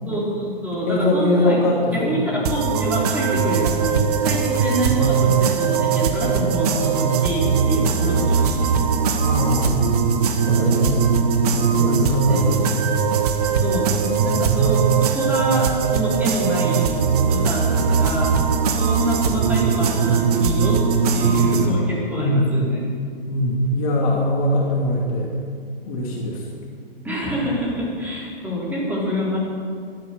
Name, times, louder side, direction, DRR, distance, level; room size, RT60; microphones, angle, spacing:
voice 1, 0.0-1.6 1.9-8.7 12.2-12.4 13.6-13.9 14.2-16.9 17.3-18.3 18.8-22.8 27.0-29.4, equal, 5° right, -6 dB, 3.8 m, -26 dB
voice 2, 0.9-2.2 9.1-9.9 10.4-11.0 11.5-12.8 14.3-14.5 22.1-22.5 23.3-25.3 25.9-26.4, left 1 dB, 35° left, -1 dB, 2.6 m, -22 dB
sound 1, 2.5-21.7, right 6 dB, 40° right, 1.4 m, -20 dB
16.5 x 11.5 x 6.7 m, 2.2 s
figure-of-eight pair, 120°, 30 cm